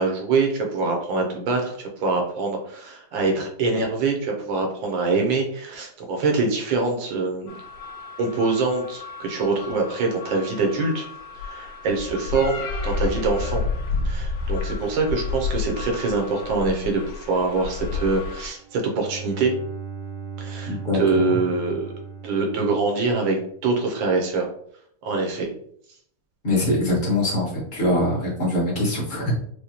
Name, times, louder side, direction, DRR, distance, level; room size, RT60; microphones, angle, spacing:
voice 1, 0.0-7.5 8.2-11.1 11.4-13.6 14.0-19.5 20.4-21.9 22.2-24.5 25.0-25.5, right 3 dB, 70° right, 2 dB, 1.3 m, -24 dB
sound 1, 7.5-18.5, left 4 dB, 70° left, 1.2 m, -31 dB
Bowed string instrument, 18.6-23.6, right 5 dB, 85° right, 0.8 m, -37 dB
voice 2, 20.7-21.0 21.3-21.4 26.4-29.3, left 1 dB, 30° left, -5 dB, 1.0 m, -23 dB
4.9 x 2.2 x 2.8 m, 0.64 s
omnidirectional pair, 2.4 m